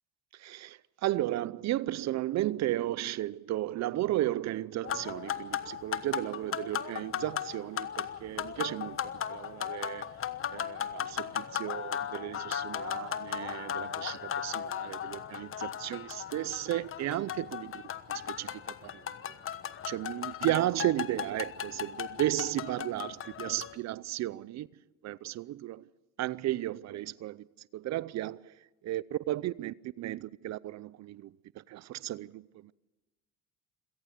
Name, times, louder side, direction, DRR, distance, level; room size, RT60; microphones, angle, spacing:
voice 1, 0.3-9.0 9.3-10.1 10.5-17.8 18.1-18.9 19.9-24.7 25.0-25.9 26.2-27.5 27.7-28.5 28.8-32.7, right 14 dB, 55° right, 0.6 m, -34 dB
sound 1, 4.8-23.8, left 9 dB, 40° left, 1.2 m, -37 dB
27.0 x 18.0 x 6.7 m
cardioid pair, 95°, 32 cm